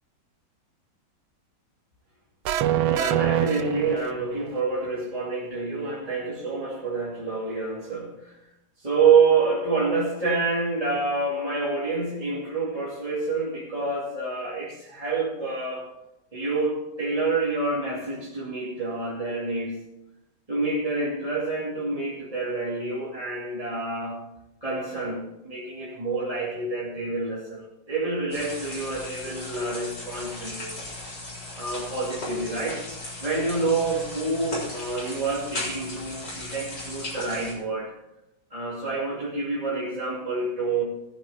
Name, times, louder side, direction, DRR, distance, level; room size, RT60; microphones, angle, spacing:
sound 1, 2.4-4.4, right 13 dB, 80° right, 1.4 m, -24 dB
voice 1, 2.8-8.4 8.8-15.9 16.3-19.8 20.5-24.2 24.6-30.7 31.6-32.9 33.2-37.9 38.5-40.8, right 4 dB, 15° right, -8 dB, 2.8 m, -27 dB
sound 2, 28.3-37.5, left 2 dB, 55° left, 4.6 m, -37 dB
18.5 x 8.0 x 4.3 m, 0.90 s
omnidirectional pair, 2.3 m